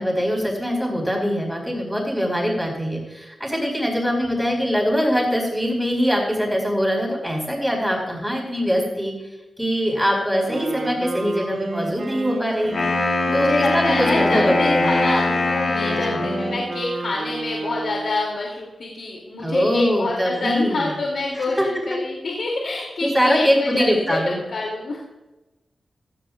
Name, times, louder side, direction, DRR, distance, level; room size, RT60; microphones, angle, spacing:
voice 1, 0.0-9.1 9.6-12.9 13.3-14.9 15.8-16.2 19.4-20.9 21.3-21.7 23.0-24.4, equal, ahead, -1 dB, 5.1 m, -22 dB
Wind instrument woodwind instrument, 10.4-18.3, right 3 dB, 60° right, 2.0 m, -31 dB
Wind instrument woodwind instrument 2, 12.6-16.6, left 3 dB, 55° left, 3.5 m, -22 dB
voice 2, 13.2-24.2 24.5-25.0, left 2 dB, 70° left, -2 dB, 2.9 m, -26 dB
16.5 x 15.0 x 2.5 m, 1.0 s
wide cardioid pair, 120°, 0 cm